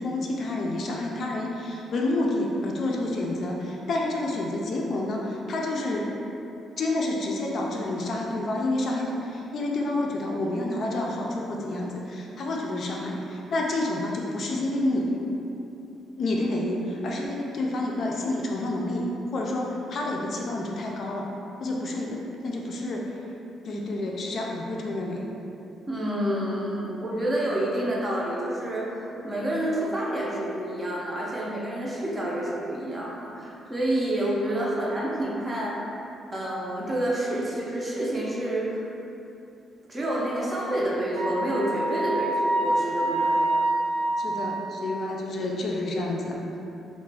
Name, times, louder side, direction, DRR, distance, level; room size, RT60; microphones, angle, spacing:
voice 1, 0.0-6.1 6.8-15.2 16.2-21.3 21.6-23.2 23.6-25.2 44.2-46.6, left 2 dB, 60° left, -1 dB, 0.3 m, -29 dB
voice 2, 25.9-35.8 36.3-38.8 39.9-43.6, right 1 dB, 25° right, -4 dB, 0.5 m, -28 dB
Wind instrument woodwind instrument, 41.1-45.0, right 2 dB, 80° right, 0.4 m, -26 dB
2.3 x 2.1 x 3.2 m, 2.8 s
cardioid pair, 90°, 0 cm